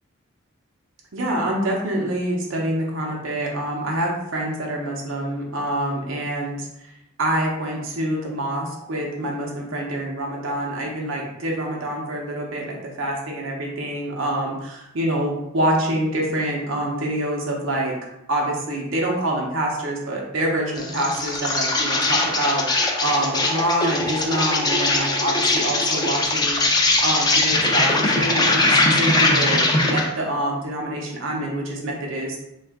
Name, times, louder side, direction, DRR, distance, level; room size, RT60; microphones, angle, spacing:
voice 1, 1.1-6.9 7.2-17.9 18.3-26.6 27.0-32.4, right 1 dB, 85° right, -2 dB, 0.6 m, -26 dB
Insect, 20.8-30.1, left 2 dB, 20° left, 0.4 m, -21 dB
2.6 x 2.4 x 3.4 m, 0.86 s
head